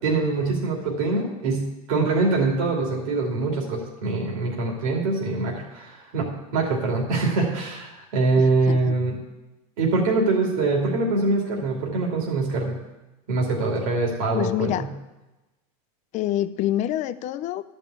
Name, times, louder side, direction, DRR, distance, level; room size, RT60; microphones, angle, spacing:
voice 1, 0.0-9.2 9.8-12.8 13.3-14.9, right 3 dB, 70° right, -1 dB, 2.7 m, -24 dB
voice 2, 8.4-8.9 14.3-14.9 16.1-17.6, left 13 dB, 40° left, 14 dB, 0.6 m, -27 dB
12.5 x 5.4 x 8.2 m, 1.1 s
supercardioid pair, 125°, 18 cm